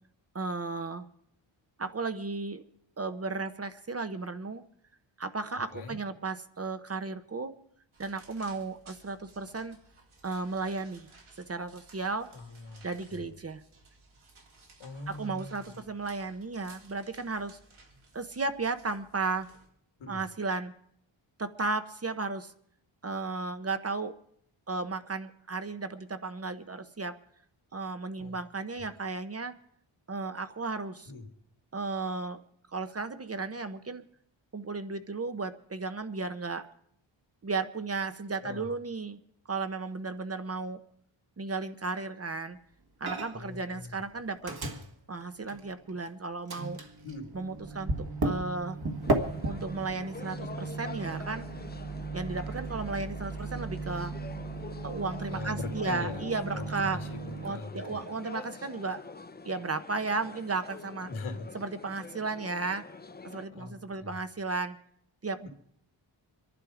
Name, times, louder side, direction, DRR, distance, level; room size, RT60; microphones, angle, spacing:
voice 1, 0.3-1.1 1.8-2.6 3.0-4.6 5.2-7.5 8.0-9.8 10.2-11.1 11.5-12.3 12.8-13.6 15.1-17.6 18.1-19.5 20.1-20.7 21.4-22.5 23.0-24.2 24.7-27.2 27.7-29.5 30.1-31.1 31.7-32.4 32.7-34.0 34.5-36.7 37.4-39.2 39.5-40.8 41.4-42.6 43.0-44.6 45.1-46.8 47.3-48.8 49.4-51.5 52.1-54.1 54.8-57.0 57.4-59.0 59.4-61.1 61.5-62.8 63.2-64.8 65.2-65.5, right 3 dB, 30° right, 10 dB, 0.8 m, -34 dB
sound 1, 7.9-19.7, right 3 dB, 85° right, 3.9 m, -58 dB
voice 2, 12.3-13.2 14.8-15.8 20.0-20.2 28.2-28.4 31.1-31.3 38.4-38.7 43.3-44.0 47.0-47.3 55.3-56.3 56.5-58.0 61.1-61.5 63.5-64.2, left 3 dB, 80° left, 5 dB, 2.4 m, -41 dB
Microwave oven, 43.1-43.5 43.8-46.1 46.5-57.5, right 2 dB, 50° right, 1.7 m, -35 dB
sound 2, 49.0-63.4, left 4 dB, 20° left, 0.6 m, -46 dB
25.0 x 11.0 x 4.9 m, 0.68 s
wide cardioid pair, 135°, 47 cm